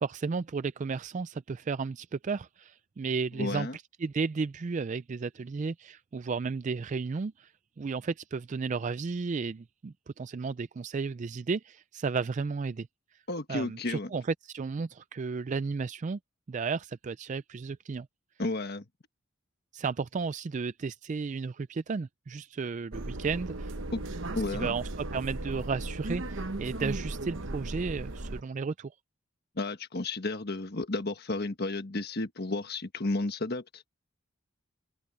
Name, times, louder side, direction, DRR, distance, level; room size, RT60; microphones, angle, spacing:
voice 1, 0.0-7.5 7.8-12.9 13.5-16.2 16.5-18.1 19.7-23.7 24.5-28.9, right 4 dB, 35° right, 0.3 m, -33 dB
voice 2, 3.3-3.8 13.3-14.1 18.4-18.8 23.9-24.0 24.3-24.7 29.5-33.8, left 2 dB, 50° left, 1.4 m, -32 dB
sound 1, 22.9-28.4, right 2 dB, 65° right, 1.1 m, -36 dB
open air
head